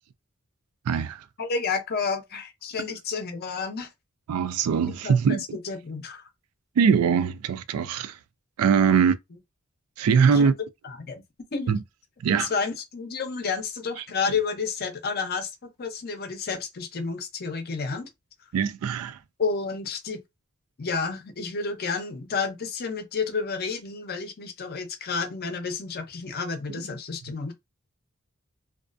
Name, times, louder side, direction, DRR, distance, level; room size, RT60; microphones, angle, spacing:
voice 1, 0.9-1.3 4.3-5.6 6.8-8.2 8.6-9.2 10.0-10.5 11.7-11.8 12.2-12.5 18.5-19.2, right 6 dB, 90° right, 0.3 m, -22 dB
voice 2, 1.4-3.9 5.0-5.4 5.6-6.2 8.9-9.0 10.3-10.5 11.0-11.2 11.5-11.7 12.4-18.1 19.4-20.2 20.8-27.5, left 5 dB, 45° left, 0.5 m, -30 dB
2.3 x 2.3 x 2.5 m
head